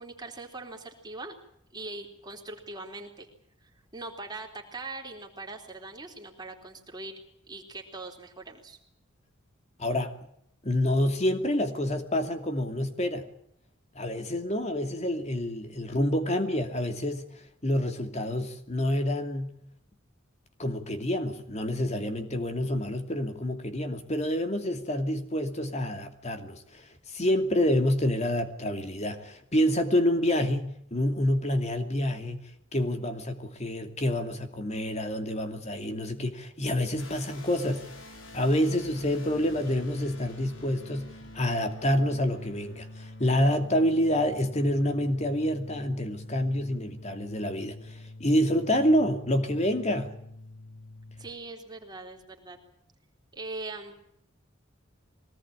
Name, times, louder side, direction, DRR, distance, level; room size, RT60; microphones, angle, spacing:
voice 1, 0.0-1.4 1.7-3.3 3.6-7.1 7.5-8.8 51.2-52.6 53.3-53.9, right 2 dB, 20° right, 3.9 m, -41 dB
voice 2, 9.8-10.2 10.6-13.3 13.9-19.6 20.6-32.4 32.7-37.9 38.3-50.2, left 1 dB, 35° left, 2.7 m, -28 dB
sound 1, 37.0-51.3, left 2 dB, 75° left, 3.3 m, -46 dB
23.5 x 18.5 x 8.9 m
head